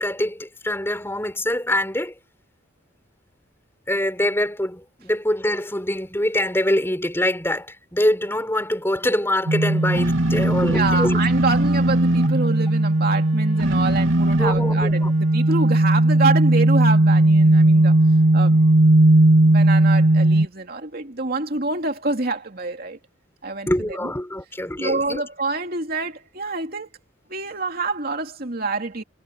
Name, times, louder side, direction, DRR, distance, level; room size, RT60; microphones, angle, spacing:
voice 1, 0.0-2.1 3.9-11.2 14.4-15.2 23.7-25.2, left 1 dB, 10° left, 4.9 m, -24 dB
sound 1, 9.5-20.5, right 1 dB, 75° right, 3.1 m, -17 dB
voice 2, 10.6-18.0 18.3-18.6 19.4-23.0 23.4-24.1 24.8-26.9 27.3-29.0, right 3 dB, 45° right, 2.9 m, -26 dB
head